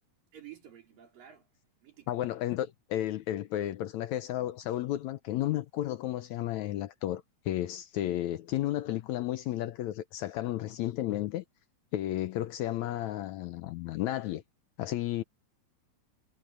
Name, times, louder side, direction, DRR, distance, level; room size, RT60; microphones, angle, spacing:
voice 1, 0.3-1.5 1.8-2.2, right 11 dB, 85° right, 6.2 m, -51 dB
voice 2, 2.1-11.4 11.9-14.4 14.8-15.2, left 13 dB, 75° left, 1.8 m, -33 dB
omnidirectional pair, 3.8 m